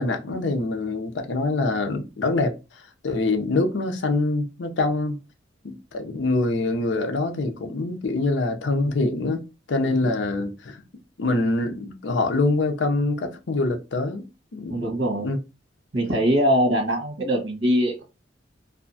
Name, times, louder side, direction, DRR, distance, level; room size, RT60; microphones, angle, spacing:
voice 1, 0.0-2.5 3.0-5.2 5.6-9.4 9.7-10.8 11.2-14.8 15.2-15.4, left 2 dB, 70° left, 0.5 m, -24 dB
voice 2, 14.7-15.3 15.9-18.0, equal, 80° right, 1.1 m, -22 dB
2.7 x 2.2 x 2.6 m
head